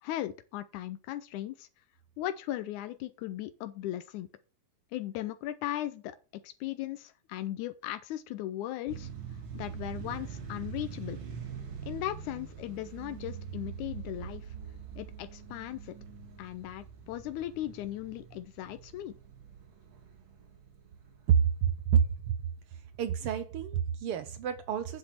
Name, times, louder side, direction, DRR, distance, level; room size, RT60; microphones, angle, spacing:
voice 1, 0.0-1.7 2.2-4.3 4.9-6.2 6.4-9.1 9.5-11.2 11.9-14.5 15.0-15.9 16.4-19.1, left 13 dB, 85° left, 2.1 m, -37 dB
sound 1, 8.9-22.0, right 7 dB, 50° right, 2.1 m, -44 dB
voice 2, 21.3-22.1 23.0-25.0, right 8 dB, 75° right, 1.4 m, -27 dB
8.0 x 6.5 x 5.8 m
omnidirectional pair, 3.4 m